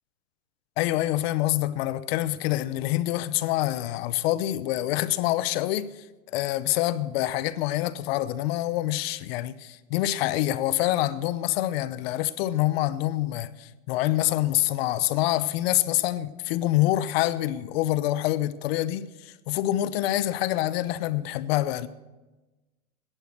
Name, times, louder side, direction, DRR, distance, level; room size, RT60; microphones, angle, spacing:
voice 1, 0.8-5.9 6.3-21.9, left 15 dB, 45° left, 0.8 m, -26 dB
15.5 x 11.0 x 6.6 m
hypercardioid pair, 135°, 42 cm